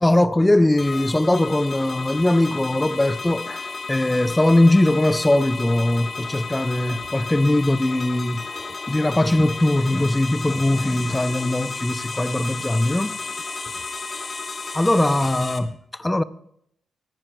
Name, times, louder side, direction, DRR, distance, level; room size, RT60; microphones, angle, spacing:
voice 1, 0.0-8.5 8.9-13.1 14.7-16.2, left 1 dB, 15° left, 0.5 m, -20 dB
sound 1, 0.8-15.6, left 4 dB, 40° left, 1.2 m, -33 dB
25.0 x 9.7 x 2.3 m
supercardioid pair, 60°, 0 cm